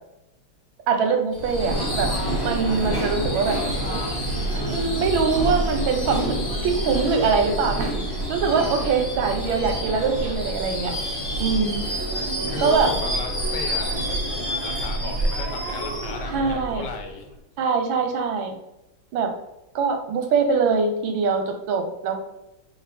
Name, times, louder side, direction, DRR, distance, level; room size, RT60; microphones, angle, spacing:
voice 1, 0.9-2.1 2.4-3.6 4.7-6.4 6.6-10.9 11.4-11.8 12.6-12.9 16.3-16.9 17.6-18.5 19.1-19.3 19.7-22.2, right 5 dB, 90° right, 4 dB, 1.6 m, -23 dB
Subway metro underground / Screech, 1.3-17.3, right 1 dB, 15° left, 0.8 m, -27 dB
voice 2, 11.5-12.0 12.5-17.3, left 5 dB, 70° left, 5 dB, 1.1 m, -36 dB
5.2 x 2.3 x 4.1 m, 0.88 s
omnidirectional pair, 2.2 m